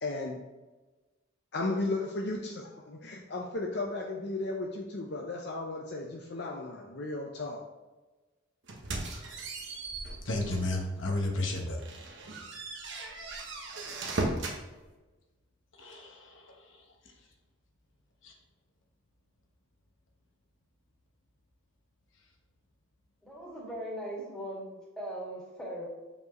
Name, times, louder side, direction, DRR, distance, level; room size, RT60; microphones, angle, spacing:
voice 1, 0.0-0.4 1.5-7.6, left 2 dB, 55° left, 0 dB, 0.6 m, -35 dB
sound 1, 8.7-10.8 11.2-11.4 11.8-14.6, right 2 dB, 60° right, 1.0 m, -37 dB
voice 2, 10.2-11.8 15.8-16.8 18.2-18.3, left 2 dB, 70° left, 1 dB, 1.1 m, -33 dB
voice 3, 23.2-25.9, right 1 dB, 5° left, -7 dB, 2.1 m, -39 dB
7.1 x 5.4 x 3.1 m, 1.2 s
head